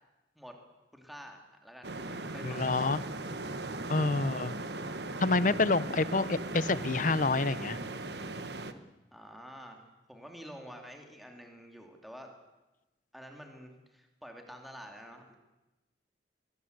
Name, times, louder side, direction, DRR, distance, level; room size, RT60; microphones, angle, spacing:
voice 1, 0.9-1.9 2.2-2.9 4.0-4.4 5.9-6.0 9.1-12.3 13.1-15.3, equal, ahead, 2 dB, 2.9 m, -49 dB
sound 1, 1.8-8.7, right 2 dB, 65° right, 1.4 m, -38 dB
voice 2, 2.4-3.0 3.9-4.5 5.2-7.8, left 3 dB, 45° left, 17 dB, 0.8 m, -28 dB
23.0 x 20.0 x 8.1 m, 1.0 s
head